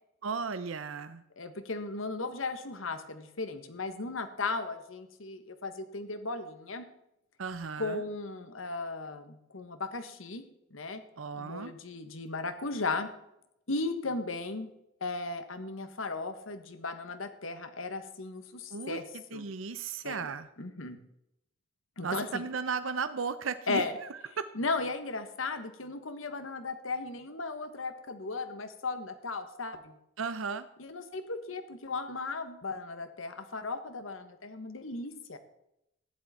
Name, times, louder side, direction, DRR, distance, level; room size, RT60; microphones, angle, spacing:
voice 1, 0.2-1.2 7.4-8.0 11.2-11.7 18.7-19.0 19.3-20.5 22.0-23.8 24.1-24.5 30.2-30.7, right 5 dB, 85° right, 12 dB, 0.7 m, -35 dB
voice 2, 1.4-6.8 7.8-11.0 11.3-13.1 13.7-14.7 15.0-19.4 20.0-20.3 20.6-21.0 22.0-22.4 23.7-23.9 24.5-30.0 30.8-35.4, left 3 dB, 90° left, 9 dB, 1.4 m, -36 dB
14.5 x 10.5 x 4.3 m, 0.82 s
head